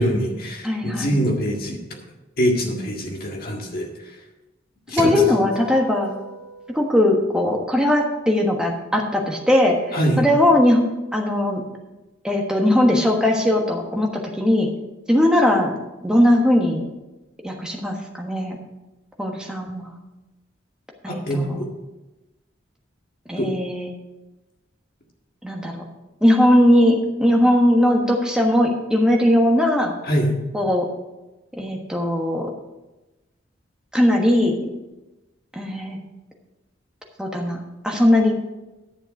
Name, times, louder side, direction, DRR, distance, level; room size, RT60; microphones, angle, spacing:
voice 1, 0.0-1.8 2.4-3.9 4.9-5.4 9.9-10.2 21.1-21.7 23.4-23.5 30.0-30.4, equal, 45° left, 0 dB, 1.9 m, -23 dB
voice 2, 0.6-1.2 2.6-2.9 4.9-6.1 6.7-10.8 11.1-11.6 12.2-14.7 15.1-15.7 16.0-16.8 17.4-18.6 19.2-19.9 21.0-21.6 23.3-23.9 25.4-25.8 26.2-29.9 30.5-30.8 31.6-32.5 33.9-34.7 35.5-36.0 37.2-38.4, left 1 dB, 5° right, 0 dB, 1.3 m, -19 dB
sound 1, 5.0-7.4, right 1 dB, 60° right, 2.4 m, -34 dB
11.0 x 7.1 x 5.3 m, 1.1 s
head